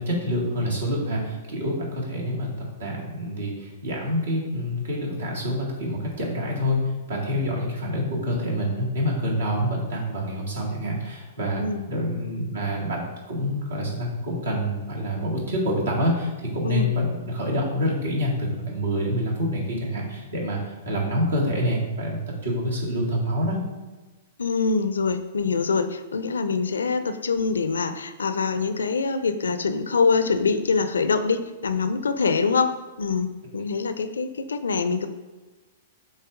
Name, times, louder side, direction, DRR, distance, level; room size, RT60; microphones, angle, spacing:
voice 1, 0.0-2.5 2.8-23.6, equal, 70° right, -3 dB, 2.0 m, -27 dB
voice 2, 24.4-35.1, left 4 dB, 75° left, 10 dB, 0.5 m, -24 dB
7.2 x 2.7 x 4.9 m, 1.2 s
figure-of-eight pair, 110°, 0 cm